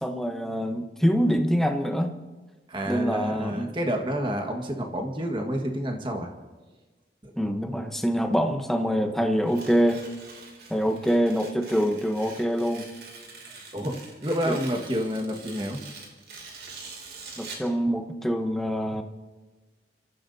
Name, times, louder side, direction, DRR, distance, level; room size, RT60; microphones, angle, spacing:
voice 1, 0.0-2.1 2.9-3.7 7.4-10.0 10.7-12.9 14.5-14.6 17.4-19.0, equal, ahead, 4 dB, 0.9 m, -25 dB
voice 2, 2.7-6.3 7.2-7.3 13.7-15.8, equal, 25° right, 3 dB, 1.6 m, -29 dB
Tearing, 9.4-17.7, right 4 dB, 60° right, 2.8 m, -44 dB
30.0 x 14.5 x 2.8 m, 1.2 s
head